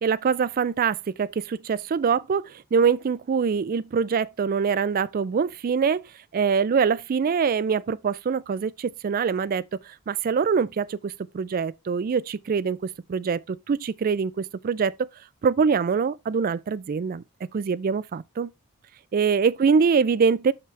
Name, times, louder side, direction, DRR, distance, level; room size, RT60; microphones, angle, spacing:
voice 1, 0.0-6.0 6.3-9.8 10.1-15.1 15.4-17.2 17.5-18.5 19.1-20.5, right 6 dB, 40° right, 0.3 m, -24 dB
6.1 x 5.8 x 3.2 m
head